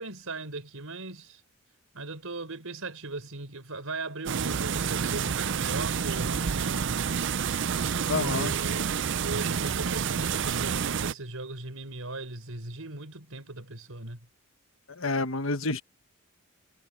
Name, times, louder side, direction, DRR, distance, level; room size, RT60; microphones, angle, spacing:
voice 1, 0.0-1.4 1.9-7.1 8.1-14.2, right 2 dB, 90° right, 4.5 m, -38 dB
sound 1, 4.3-11.1, right 7 dB, 60° right, 0.5 m, -29 dB
voice 2, 8.1-8.5 15.0-15.8, left 3 dB, 70° left, 1.5 m, -28 dB
head